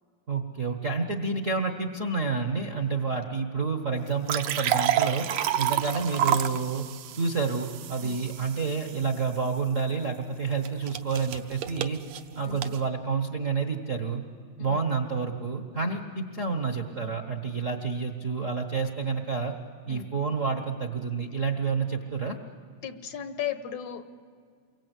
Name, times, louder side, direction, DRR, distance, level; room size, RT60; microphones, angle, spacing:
voice 1, 0.3-5.3 5.6-6.9 7.1-12.0 12.3-14.2 14.6-19.5 19.9-22.4, right 5 dB, 45° right, 3 dB, 1.0 m, -29 dB
sound 1, 4.1-9.2 10.6-12.8, right 11 dB, 70° right, 2.0 m, -29 dB
voice 2, 22.8-24.1, left 9 dB, 75° left, 10 dB, 2.4 m, -35 dB
28.5 x 23.0 x 8.2 m, 2.1 s
omnidirectional pair, 3.4 m